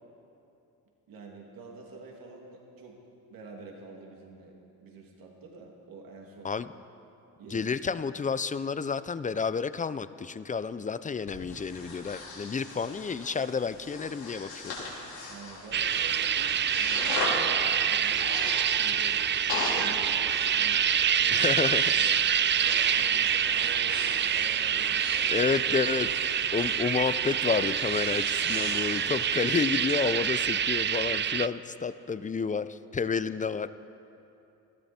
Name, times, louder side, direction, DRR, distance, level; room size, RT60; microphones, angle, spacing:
voice 1, 1.1-3.0 3.3-4.5 4.8-6.5 7.4-7.7 15.3-17.1 17.9-20.3 20.6-20.8 21.1-21.5 21.9-22.2 22.6-25.4, right 3 dB, 70° right, 0 dB, 2.7 m, -47 dB
voice 2, 7.5-14.7 21.3-21.9 23.1-23.3 25.3-33.7, left 5 dB, 20° left, 14 dB, 0.5 m, -30 dB
Breathing, 11.3-30.0, left 3 dB, 85° left, 4.4 m, -40 dB
sound 1, 15.7-31.5, right 8 dB, 30° right, 0.4 m, -26 dB
18.5 x 13.5 x 4.4 m, 2.8 s
supercardioid pair, 75°, 36 cm